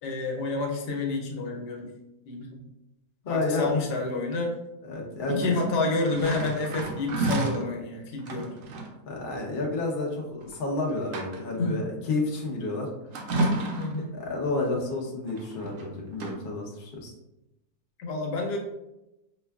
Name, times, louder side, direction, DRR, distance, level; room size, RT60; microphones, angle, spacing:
voice 1, 0.0-1.9 2.3-2.6 3.3-4.5 5.3-8.5 11.6-11.8 13.8-14.1 18.0-18.6, left 3 dB, 90° left, 1 dB, 1.3 m, -29 dB
voice 2, 3.2-3.9 4.8-5.6 8.3-8.5 9.1-12.9 14.1-17.1, left 2 dB, 45° left, -1 dB, 0.7 m, -30 dB
sound 1, 5.4-7.7 8.2-9.0 10.4-10.6 10.9-11.6 13.1-14.1 15.3-15.9 16.1-16.3, right 2 dB, 65° right, 0.9 m, -31 dB
5.3 x 2.3 x 2.3 m, 0.93 s
omnidirectional pair, 1.7 m